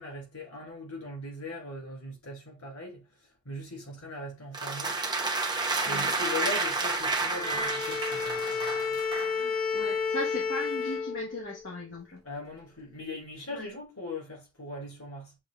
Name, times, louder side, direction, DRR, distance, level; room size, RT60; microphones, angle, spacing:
voice 1, 0.0-5.0 5.8-9.0 12.2-15.4, left 2 dB, 85° left, 3.1 m, -40 dB
sound 1, 4.5-9.4, right 3 dB, 20° right, 0.9 m, -30 dB
Bowed string instrument, 7.2-11.7, left 5 dB, 15° left, 1.2 m, -31 dB
voice 2, 9.3-12.2 13.5-13.6, left 1 dB, 60° left, 1.0 m, -38 dB
6.9 x 2.3 x 3.3 m
head